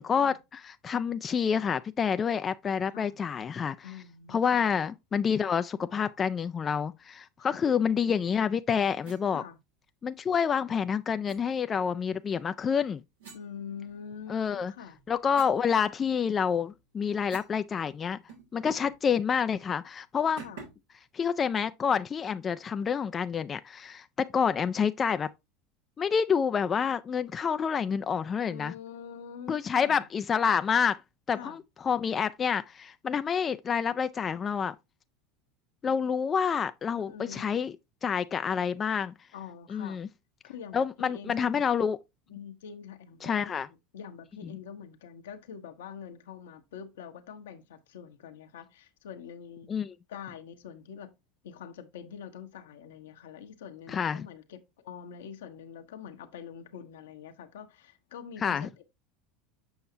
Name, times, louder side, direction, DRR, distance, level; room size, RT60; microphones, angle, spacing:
voice 1, 0.0-3.9 4.3-9.4 10.0-13.0 14.3-14.7 15.1-18.2 18.5-20.4 21.1-25.3 26.0-28.7 29.5-31.0 31.3-34.7 35.8-37.7 38.0-39.1 39.7-40.1 40.7-42.0 43.2-43.7 49.7-49.9 53.9-54.3 58.4-58.7, left 7 dB, 30° left, 0.3 m, -28 dB
voice 2, 3.8-4.7 7.4-7.6 9.3-9.6 13.3-15.0 20.4-20.6 28.5-30.1 31.3-31.6 37.1-37.5 39.3-40.0 40.4-41.9 42.3-49.7 50.1-51.1 51.4-58.7, left 8 dB, 80° left, 0.9 m, -45 dB
sound 1, 9.0-9.3 11.2-11.4 13.2-14.2 14.7-17.6 17.9-18.0 18.3-19.0 19.3-19.5 20.4-20.9, right 5 dB, 85° right, 1.9 m, -50 dB
7.0 x 5.6 x 2.7 m
hypercardioid pair, 90°, 0 cm